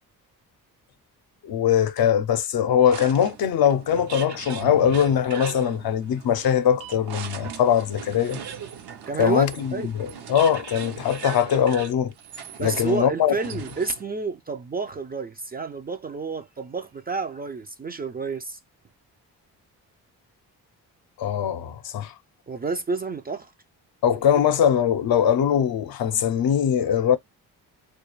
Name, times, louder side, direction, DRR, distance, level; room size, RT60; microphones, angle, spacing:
voice 1, 1.4-8.4 9.2-12.1 12.6-13.3 21.2-22.1 24.0-27.2, left 9 dB, 60° left, 0.6 m, -21 dB
sound 1, 2.9-14.2, right 8 dB, 65° right, 0.7 m, -39 dB
voice 2, 9.1-9.9 12.6-18.6 22.5-23.5, right 4 dB, 25° right, 0.4 m, -30 dB
2.3 x 2.2 x 3.0 m
supercardioid pair, 55°, 42 cm